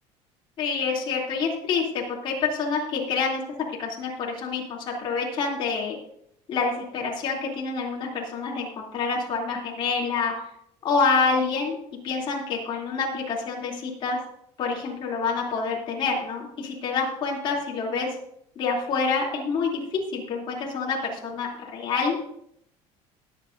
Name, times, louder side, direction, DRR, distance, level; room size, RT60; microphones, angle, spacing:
voice 1, 0.6-3.4 3.8-5.9 6.5-10.3 10.8-11.8 12.0-14.2 14.6-18.1 18.6-22.2, left 4 dB, 35° left, -2 dB, 2.9 m, -27 dB
22.0 x 8.0 x 2.6 m, 0.74 s
cardioid pair, 165°, 13 cm